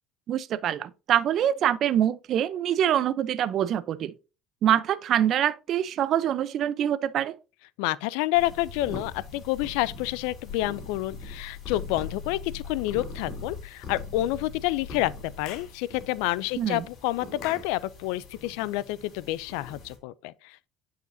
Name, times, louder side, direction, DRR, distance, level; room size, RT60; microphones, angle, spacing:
voice 1, 0.3-4.1 4.6-7.4 16.6-16.9, right 10 dB, 50° right, 0.5 m, -25 dB
voice 2, 7.8-15.1 15.4-20.6, left 17 dB, 80° left, 0.3 m, -29 dB
sound 1, 8.3-20.0, left 4 dB, 50° left, 3.3 m, -41 dB
Clapping / Chirp tweet, 15.4-15.8 17.4-17.8, left 10 dB, 65° left, 1.0 m, -41 dB
10.5 x 5.0 x 2.6 m
supercardioid pair, 105°, 0 cm